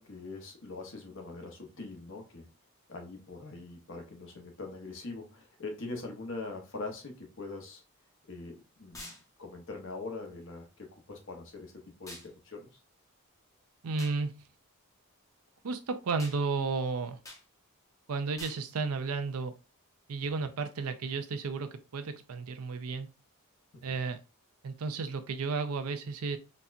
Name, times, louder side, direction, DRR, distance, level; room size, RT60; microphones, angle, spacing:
voice 1, 0.0-2.5 2.9-7.8 8.3-9.1 9.4-11.7 12.0-12.7 23.8-24.0, left 3 dB, 60° left, 0.9 m, -42 dB
sound 1, 8.9-9.2 12.1-12.3 14.0-14.2 16.2-16.4 17.2-17.4 18.4-18.6, left 1 dB, 15° left, 0.7 m, -46 dB
voice 2, 13.8-14.3 15.6-17.2 18.1-19.5 20.1-23.1 23.8-24.2 24.6-26.4, right 4 dB, 90° right, 0.5 m, -33 dB
4.1 x 2.3 x 2.5 m
head